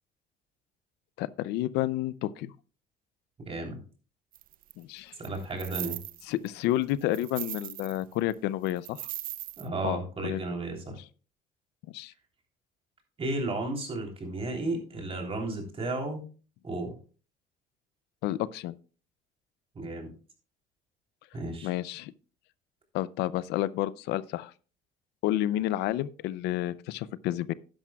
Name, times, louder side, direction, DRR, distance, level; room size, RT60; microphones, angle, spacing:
voice 1, 1.2-2.5 4.8-5.1 6.3-9.0 9.8-10.4 11.9-12.1 18.2-18.8 21.6-22.1 22.9-24.5 25.2-27.5, left 14 dB, 90° left, 0.4 m, -30 dB
voice 2, 3.5-3.8 5.2-6.0 9.6-11.0 13.2-16.3 16.6-17.0 19.7-20.1 21.3-21.7, right 2 dB, 35° right, 3.3 m, -33 dB
sound 1, 4.3-4.7 5.2-6.5 6.8-8.0 8.3-8.4 8.7-9.7, right 14 dB, 55° right, 0.4 m, -38 dB
12.0 x 10.5 x 2.3 m
cardioid pair, 110°, 17 cm